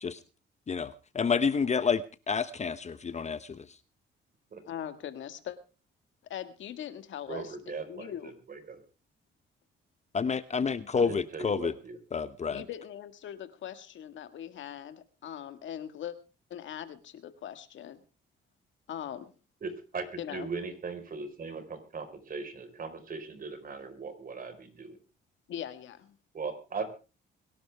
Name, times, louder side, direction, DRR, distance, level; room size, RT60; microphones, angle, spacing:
voice 1, 0.7-3.6 10.1-11.7 12.1-12.6, left 5 dB, 35° left, 14 dB, 0.9 m, -29 dB
voice 2, 4.7-5.6 6.3-7.6 7.9-8.3 12.5-16.2 16.5-18.0 18.9-19.3 20.2-20.5 25.5-26.2, left 10 dB, 75° left, 10 dB, 1.8 m, -41 dB
voice 3, 7.3-8.8 10.9-12.0 19.6-20.0 20.3-25.0 26.3-26.9, right 4 dB, 45° right, 9 dB, 4.4 m, -39 dB
23.0 x 12.0 x 3.5 m, 0.34 s
cardioid pair, 90°, 20 cm